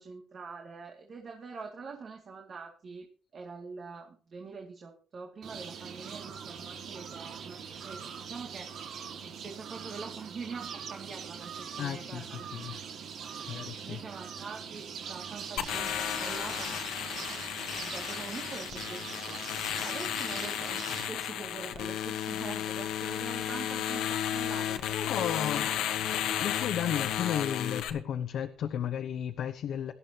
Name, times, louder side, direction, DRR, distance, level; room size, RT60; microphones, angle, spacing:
voice 1, 0.0-3.1 3.3-8.7 9.2-12.5 13.2-13.5 13.8-25.3 25.5-25.7, right 4 dB, 50° right, 1 dB, 2.4 m, -44 dB
sound 1, 5.4-21.1, right 7 dB, 70° right, 2.0 m, -42 dB
voice 2, 11.8-12.8 13.5-14.0 24.9-25.8 26.4-29.9, left 9 dB, 75° left, 6 dB, 0.9 m, -34 dB
sound 2, 15.6-27.9, left 10 dB, 90° left, 1.2 m, -33 dB
18.0 x 12.5 x 2.9 m, 0.38 s
cardioid pair, 90°, 0 cm